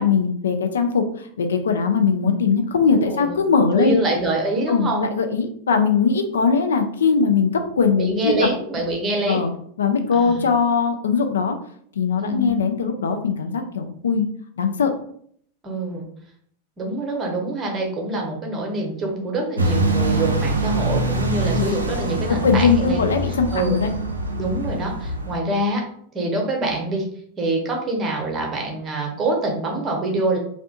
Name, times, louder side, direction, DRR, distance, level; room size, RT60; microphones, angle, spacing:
voice 1, 0.0-4.0 4.7-8.3 9.3-9.5 9.8-11.6 12.0-14.3 14.6-14.9 21.5-21.7 22.3-23.9, left 5 dB, 65° left, 6 dB, 0.3 m, -20 dB
voice 2, 3.1-3.4 3.7-5.0 8.0-9.5 10.1-10.5 12.2-12.5 15.6-16.1 16.8-23.1 23.5-23.8 24.3-25.8 26.1-27.0 27.4-30.4, right 2 dB, 25° right, 0 dB, 0.7 m, -25 dB
sound 1, 19.6-25.4, right 2 dB, 80° right, 0.3 m, -24 dB
2.5 x 2.1 x 2.6 m, 0.63 s
figure-of-eight pair, 90°, 0 cm